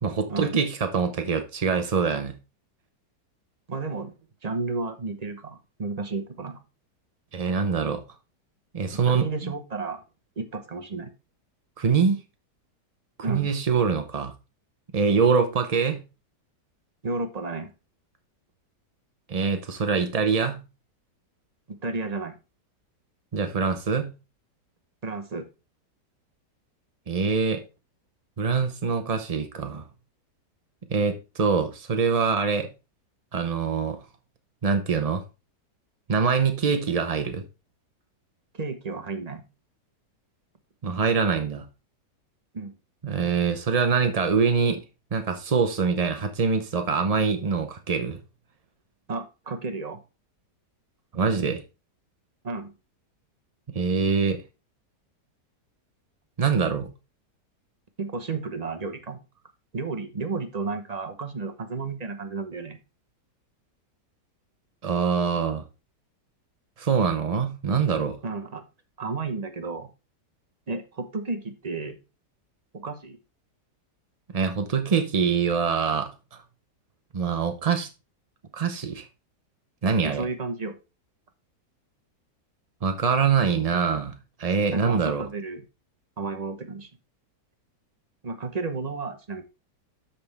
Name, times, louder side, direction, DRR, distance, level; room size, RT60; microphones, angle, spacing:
voice 1, 0.0-2.4 7.3-8.0 8.7-9.5 11.8-12.2 13.3-14.3 14.9-16.0 19.3-20.6 23.3-24.1 27.1-27.6 28.4-29.9 30.9-32.7 33.3-34.0 34.6-35.2 36.1-37.4 40.8-41.7 43.0-44.8 45.1-48.2 51.1-51.6 53.7-54.4 56.4-56.9 64.8-65.6 66.8-68.2 74.3-76.1 77.1-77.9 78.5-79.1 79.8-80.2 82.8-84.1 84.4-85.3, right 5 dB, 70° right, 0.3 m, -24 dB
voice 2, 3.7-4.1 4.4-6.6 9.1-10.0 10.4-11.1 13.2-13.5 17.0-17.7 21.8-22.3 25.0-25.5 38.5-39.4 42.5-42.7 49.1-50.0 52.4-52.7 58.0-59.2 59.7-62.8 68.2-68.6 69.0-69.9 70.7-72.0 72.7-73.2 80.0-80.7 84.7-85.6 86.2-86.9 88.2-89.4, right 3 dB, 30° right, 0.7 m, -32 dB
12.5 x 4.3 x 3.3 m
omnidirectional pair, 1.9 m